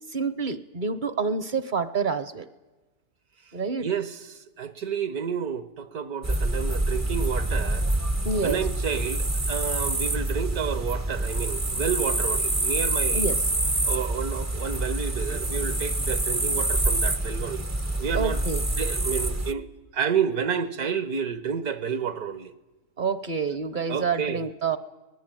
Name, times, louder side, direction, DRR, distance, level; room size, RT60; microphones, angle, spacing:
voice 1, 0.1-2.5 3.5-3.9 8.2-8.6 13.1-13.4 18.1-18.6 23.0-24.8, right 5 dB, 40° right, 0.8 m, -28 dB
voice 2, 3.8-7.9 8.4-13.3 13.8-17.7 18.0-18.4 18.7-19.6 19.9-22.5 23.9-24.4, right 7 dB, 70° right, 1.7 m, -30 dB
sound 1, 6.2-19.5, right 2 dB, 20° right, 0.4 m, -26 dB
23.5 x 19.5 x 9.0 m
omnidirectional pair, 1.7 m